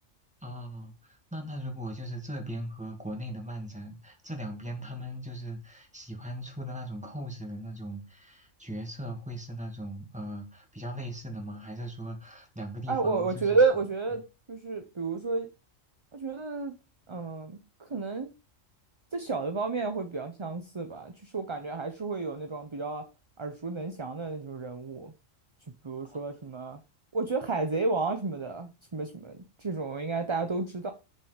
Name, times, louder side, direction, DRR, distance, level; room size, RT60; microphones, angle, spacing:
voice 1, 0.4-0.9 1.3-13.5 26.1-26.2, equal, 5° right, 2.1 m, -39 dB
voice 2, 12.9-14.2 14.5-15.5 16.1-16.7 17.1-18.3 19.1-23.1 23.4-25.1 25.8-26.8 27.1-30.9, right 4 dB, 25° right, 0.7 m, -31 dB
6.9 x 5.5 x 6.6 m
omnidirectional pair, 1.3 m